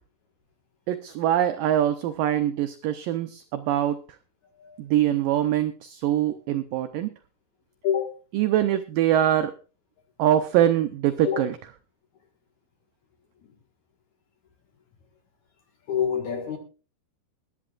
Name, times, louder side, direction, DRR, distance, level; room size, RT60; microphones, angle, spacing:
voice 1, 0.9-4.0 4.8-7.1 8.3-9.5 10.2-11.6, right 11 dB, 90° right, 1.9 m, -23 dB
voice 2, 15.9-16.6, left 8 dB, 55° left, 2.5 m, -26 dB
21.0 x 11.0 x 2.4 m
omnidirectional pair, 4.8 m